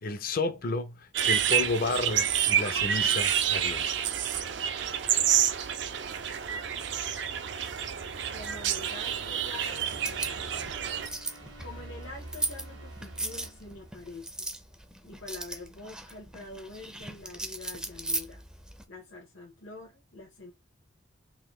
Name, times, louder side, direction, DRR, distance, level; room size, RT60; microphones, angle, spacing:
voice 1, 0.0-4.1, left 3 dB, 45° left, 0.5 m, -32 dB
sound 1, 1.1-11.1, right 9 dB, 60° right, 0.5 m, -28 dB
sound 2, 6.1-14.4, right 2 dB, 80° right, 1.4 m, -48 dB
voice 2, 8.3-10.5 11.6-14.5 15.0-18.4 18.9-20.5, left 3 dB, 80° left, 1.1 m, -45 dB
sound 3, 9.9-18.8, right 1 dB, 5° right, 0.4 m, -38 dB
3.8 x 2.6 x 3.2 m
head